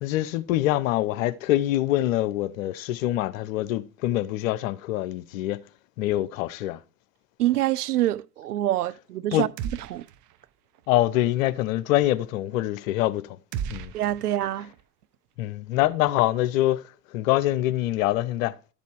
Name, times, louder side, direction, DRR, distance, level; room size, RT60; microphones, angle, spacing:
voice 1, 0.0-5.6 6.0-6.8 9.3-9.5 10.9-13.4 13.7-13.9 15.4-16.8 17.1-18.5, left 15 dB, 60° left, 0.8 m, -25 dB
voice 2, 7.4-9.5 9.9-10.1 13.9-14.7, right 13 dB, 75° right, 0.6 m, -25 dB
sound 1, 9.6-10.5 10.7-10.9 13.5-14.8, right 8 dB, 40° right, 0.9 m, -36 dB
12.5 x 6.9 x 4.6 m
figure-of-eight pair, 70°, 46 cm